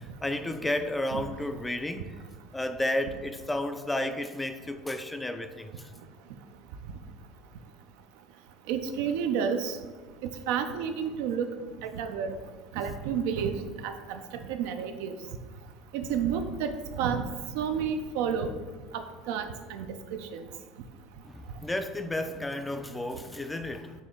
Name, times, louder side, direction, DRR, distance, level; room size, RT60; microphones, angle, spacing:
voice 1, 0.0-2.1 2.5-5.7 21.2-23.9, left 1 dB, 10° left, 8 dB, 0.3 m, -32 dB
voice 2, 8.7-9.8 10.5-11.5 11.9-12.4 12.7-13.5 13.8-15.1 15.9-17.2 17.5-18.5 18.9-20.0 20.3-20.4, right 7 dB, 80° right, 7 dB, 0.4 m, -30 dB
4.2 x 2.9 x 3.6 m, 1.4 s
supercardioid pair, 100°, 0 cm